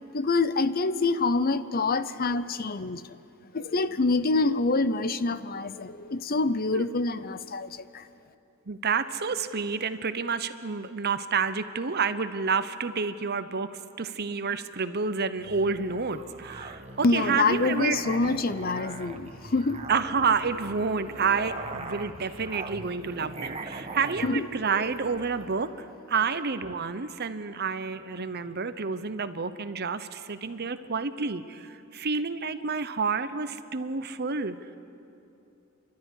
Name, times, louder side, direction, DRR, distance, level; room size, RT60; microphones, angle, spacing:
voice 1, 0.1-3.0 3.5-8.0 17.0-19.8 24.2-24.4, left 3 dB, 45° left, 13 dB, 0.7 m, -26 dB
voice 2, 8.7-13.7 14.0-18.0 19.9-34.5, right 5 dB, 50° right, 11 dB, 0.9 m, -29 dB
Musical instrument, 15.4-25.5, right 3 dB, 30° right, 1.3 m, -41 dB
30.0 x 12.5 x 9.9 m, 2.8 s
head